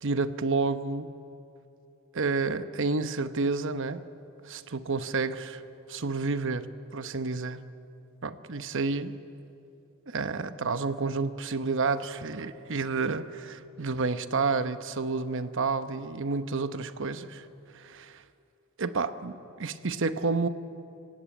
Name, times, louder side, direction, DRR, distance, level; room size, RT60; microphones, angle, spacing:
voice 1, 0.0-1.1 2.1-4.1 4.4-5.6 5.9-7.6 8.2-9.1 10.1-17.5 17.7-18.2 18.8-20.5, right 4 dB, 60° right, 11 dB, 1.0 m, -30 dB
26.5 x 16.5 x 9.1 m, 2.7 s
head